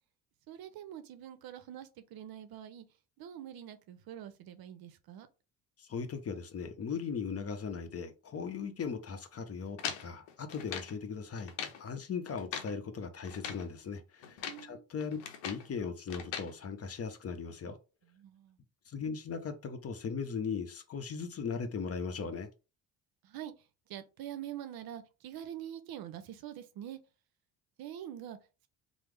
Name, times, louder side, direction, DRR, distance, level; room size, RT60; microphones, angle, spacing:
voice 1, 0.5-2.9 3.2-5.3 14.3-14.9 18.0-18.6 23.2-27.0 27.8-28.4, right 11 dB, 60° right, 0.6 m, -45 dB
voice 2, 5.8-11.5 11.8-15.2 15.4-17.8 18.9-22.5, left 5 dB, 35° left, 0.7 m, -38 dB
sound 1, 9.8-11.0 11.4-11.8 12.3-12.8 13.2-13.7 14.2-14.7 15.0-15.7 16.1-16.5, left 8 dB, 80° left, 0.7 m, -41 dB
3.3 x 2.0 x 3.2 m
supercardioid pair, 60°, 41 cm